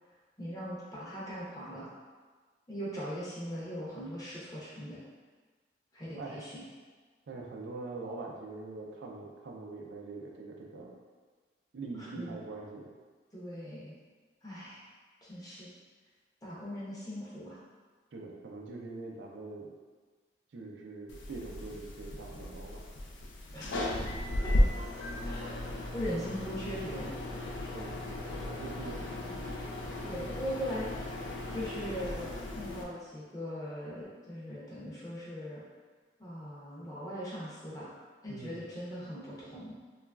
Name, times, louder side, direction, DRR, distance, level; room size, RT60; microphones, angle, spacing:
voice 1, 0.4-1.9 2.7-5.0 5.9-6.6 12.0-12.4 13.3-14.0 14.4-14.9 15.2-15.7 16.4-17.6 23.5-23.9 24.4-24.5 25.2-25.6 25.9-27.1 27.4-27.6 30.0-30.9 31.5-35.6 36.2-37.9 38.2-39.8, equal, 20° left, -7 dB, 0.5 m, -40 dB
voice 2, 7.3-11.0 11.7-12.9 18.1-19.7 20.5-22.8 27.6-28.0 28.5-29.2 38.3-38.6, right 3 dB, 80° right, -1 dB, 0.4 m, -43 dB
sound 1, 21.1-32.8, left 1 dB, 80° left, 0.4 m, -35 dB
3.0 x 2.3 x 2.2 m, 1.4 s
head